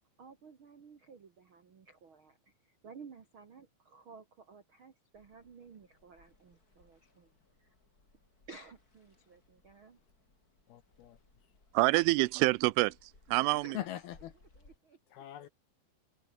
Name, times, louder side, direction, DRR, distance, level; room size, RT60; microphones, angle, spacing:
voice 1, 0.2-7.3 7.6-7.7 8.5-10.0 13.4-13.9 14.5-15.0 15.4-15.5, right 5 dB, 75° right, 1.2 m, -54 dB
sound 1, 5.1-14.8, left 3 dB, 20° left, 4.5 m, -66 dB
voice 2, 10.7-11.2 13.7-14.3 15.1-15.5, left 13 dB, 75° left, 2.5 m, -41 dB
voice 3, 11.7-13.8, right 23 dB, 90° right, 3.2 m, -27 dB
omnidirectional pair, 5.5 m